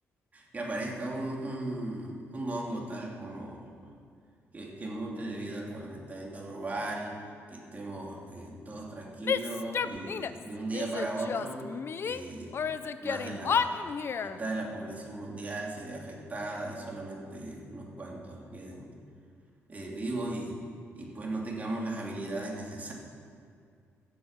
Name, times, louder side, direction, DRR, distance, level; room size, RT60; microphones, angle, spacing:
voice 1, 0.3-3.8 4.5-7.2 7.5-11.7 12.0-12.5 13.0-13.8 14.2-18.9 19.7-20.6 20.9-22.9, right 2 dB, 30° right, -2 dB, 2.9 m, -37 dB
Female speech woman speaking / Yell, 9.2-10.4 10.7-12.2 12.5-14.4, left 6 dB, 50° left, 0.6 m, -31 dB
14.0 x 8.4 x 7.5 m, 2.3 s
cardioid pair, 100°, 5 cm